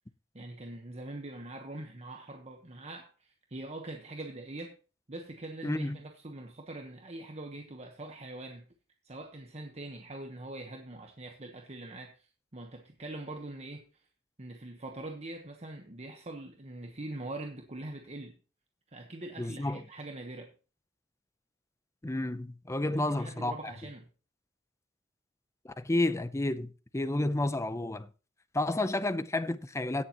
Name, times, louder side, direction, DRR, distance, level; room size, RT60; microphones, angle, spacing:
voice 1, 0.3-4.7 5.1-8.7 9.0-13.9 14.4-18.4 18.9-20.5 22.8-24.1, right 2 dB, 35° right, 1.1 m, -43 dB
voice 2, 5.6-6.0 19.4-19.8 22.0-23.7 25.6-26.7 26.9-28.1 28.5-30.0, left 2 dB, 15° left, 0.6 m, -31 dB
17.0 x 7.0 x 3.0 m
head